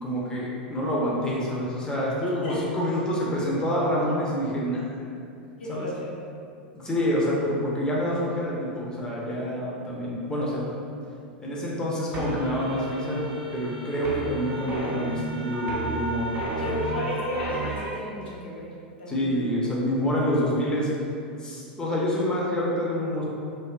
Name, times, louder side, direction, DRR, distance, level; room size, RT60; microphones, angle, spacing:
voice 1, 0.0-4.8 5.7-5.9 6.7-10.6 11.4-16.3 16.6-16.8 19.1-20.9 21.4-23.2, equal, 15° left, -5 dB, 0.5 m, -27 dB
voice 2, 5.6-5.9 16.6-18.7 19.0-19.3, equal, 75° left, -6 dB, 0.6 m, -33 dB
sound 1, 12.1-17.9, right 2 dB, 35° right, 0.6 m, -32 dB
2.6 x 2.1 x 2.4 m, 2.5 s
hypercardioid pair, 95°, 6 cm